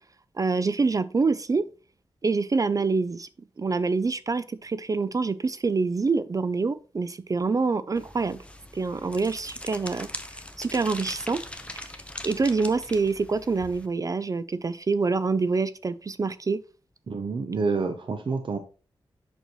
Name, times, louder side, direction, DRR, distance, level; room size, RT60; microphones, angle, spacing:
voice 1, 0.4-1.6 2.2-3.3 3.6-8.4 8.7-10.1 10.6-11.4 11.7-11.9 12.2-16.6, right 4 dB, 35° right, 0.4 m, -26 dB
sound 1, 8.0-13.9, left 1 dB, 10° left, 0.8 m, -41 dB
voice 2, 17.1-18.6, right 4 dB, 60° right, 0.8 m, -28 dB
8.0 x 6.3 x 3.0 m
wide cardioid pair, 85°, 9 cm